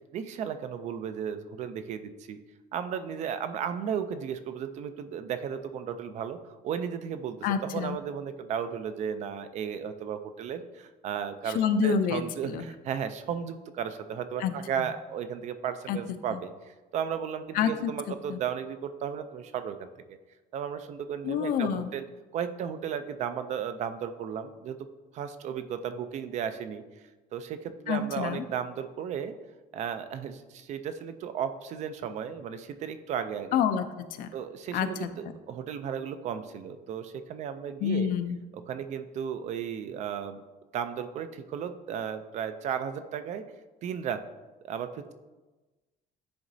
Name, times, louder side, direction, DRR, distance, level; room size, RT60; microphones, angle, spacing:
voice 1, 0.1-2.4 2.7-6.4 6.6-20.2 20.5-22.0 22.3-24.8 25.1-26.8 27.3-29.3 29.7-33.6 34.3-38.1 38.5-40.4 40.7-43.4 43.8-44.2 44.6-45.1, right 8 dB, 45° right, 10 dB, 0.4 m, -34 dB
voice 2, 7.4-8.0 11.5-12.6 14.4-14.5 15.9-16.0 16.3-16.4 17.5-17.9 18.3-18.4 21.2-21.9 27.9-28.4 33.5-34.3 34.7-35.1 37.8-38.4, left 7 dB, 55° left, 10 dB, 0.5 m, -28 dB
10.0 x 3.9 x 2.7 m, 1.2 s
cardioid pair, 180°, 17 cm